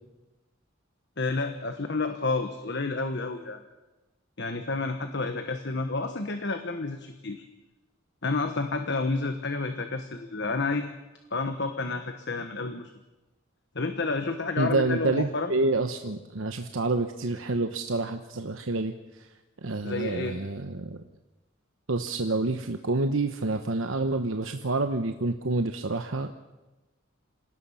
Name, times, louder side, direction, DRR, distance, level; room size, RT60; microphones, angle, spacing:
voice 1, 1.2-3.6 4.4-7.4 8.2-10.9 11.3-12.9 13.7-15.5 19.8-20.4, left 3 dB, 60° left, 7 dB, 1.3 m, -30 dB
voice 2, 14.6-19.3 19.6-21.0 21.9-26.3, right 3 dB, 75° right, 7 dB, 1.0 m, -28 dB
27.0 x 18.0 x 5.7 m, 1.1 s
head